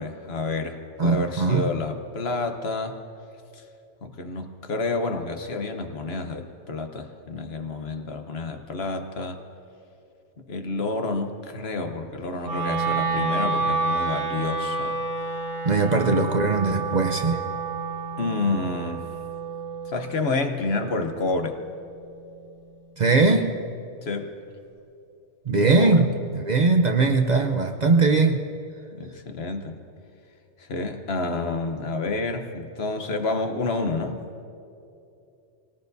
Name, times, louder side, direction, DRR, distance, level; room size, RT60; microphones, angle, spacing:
voice 1, 0.0-3.0 3.5-3.6 4.0-9.4 10.5-15.0 15.8-16.3 18.2-19.1 19.9-21.6 24.0-24.3 25.5-26.1 28.9-29.8 30.6-34.3, left 3 dB, 60° left, 6 dB, 1.2 m, -29 dB
voice 2, 1.0-1.7 15.6-17.4 23.0-23.5 25.5-28.4, right 3 dB, 45° right, 4 dB, 0.7 m, -20 dB
Wind instrument woodwind instrument, 12.4-22.6, right 4 dB, 65° right, 4.4 m, -30 dB
24.5 x 18.5 x 2.7 m, 2.6 s
omnidirectional pair, 1.2 m